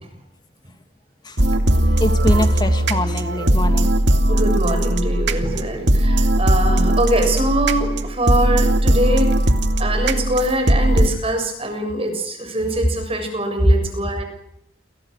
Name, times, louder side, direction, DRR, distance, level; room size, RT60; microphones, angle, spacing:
sound 1, 1.4-11.1, right 1 dB, 65° right, 2.3 m, -18 dB
voice 1, 2.0-3.9 13.6-13.8, equal, 20° left, 7 dB, 2.1 m, -21 dB
voice 2, 4.3-9.3 9.8-14.2, right 1 dB, 30° right, 6 dB, 7.2 m, -23 dB
29.5 x 24.5 x 6.5 m, 0.74 s
head